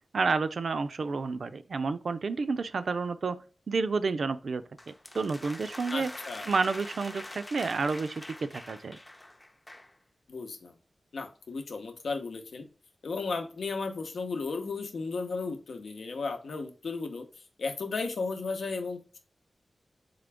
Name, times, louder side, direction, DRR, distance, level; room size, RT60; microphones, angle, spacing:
voice 1, 0.1-3.4 3.7-6.1 6.5-9.0, right 4 dB, 75° right, 0.4 m, -30 dB
sound 1, 4.8-10.0, left 1 dB, 20° left, 0.5 m, -44 dB
voice 2, 5.9-6.5 10.3-10.7 11.1-12.7 13.0-17.3 17.6-19.2, left 4 dB, 85° left, 0.8 m, -34 dB
3.8 x 3.5 x 3.4 m
wide cardioid pair, 75°, 0 cm